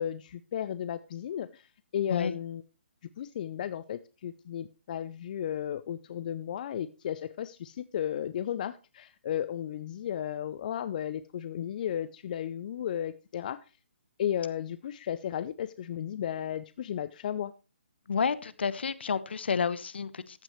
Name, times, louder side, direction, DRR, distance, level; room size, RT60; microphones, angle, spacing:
voice 1, 0.0-2.6 3.2-13.6 14.2-17.5, left 10 dB, 45° left, 14 dB, 0.5 m, -34 dB
voice 2, 18.1-20.4, left 6 dB, 65° left, 17 dB, 0.9 m, -30 dB
14.5 x 9.1 x 3.2 m, 0.31 s
figure-of-eight pair, 140°, 6 cm